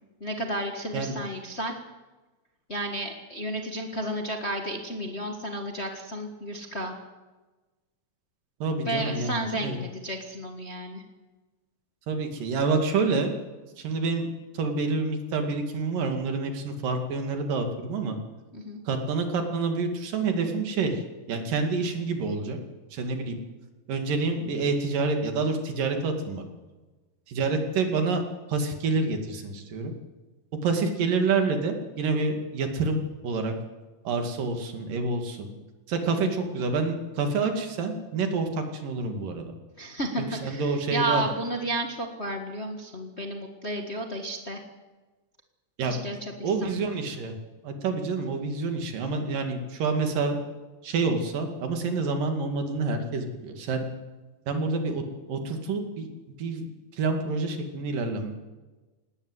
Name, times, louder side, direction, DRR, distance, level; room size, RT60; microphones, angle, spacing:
voice 1, 0.2-1.8 2.7-7.0 8.8-11.0 18.5-18.8 39.8-44.6 45.8-46.7, right 1 dB, 30° left, 3 dB, 1.2 m, -32 dB
voice 2, 8.6-9.8 12.1-13.4 13.8-14.3 14.5-18.2 18.9-21.0 21.3-22.6 22.9-23.4 23.9-26.4 27.3-28.2 28.5-29.9 30.6-33.5 34.1-35.5 35.9-39.5 40.2-41.2 45.8-46.0 46.4-47.4 47.6-50.4 50.8-53.8 54.5-55.0 55.3-56.1 56.4-56.7 56.9-58.3, right 4 dB, 90° right, 5 dB, 4.0 m, -28 dB
19.0 x 18.5 x 8.1 m, 1.2 s
omnidirectional pair, 3.8 m